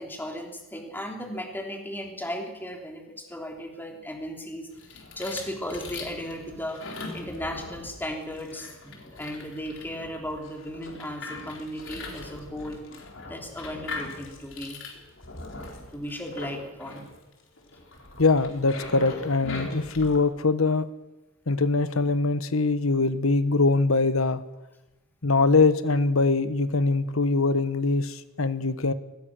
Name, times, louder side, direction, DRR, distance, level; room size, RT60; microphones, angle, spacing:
voice 1, 0.0-4.7 5.2-12.8 13.2-14.8 15.9-17.0, equal, 10° left, 2 dB, 3.4 m, -36 dB
sound 1, 4.7-20.2, left 2 dB, 65° left, 4.3 m, -41 dB
voice 2, 18.2-20.8 21.5-24.4 25.2-28.9, left 3 dB, 90° left, 13 dB, 1.3 m, -23 dB
23.5 x 19.5 x 6.4 m, 1.0 s
head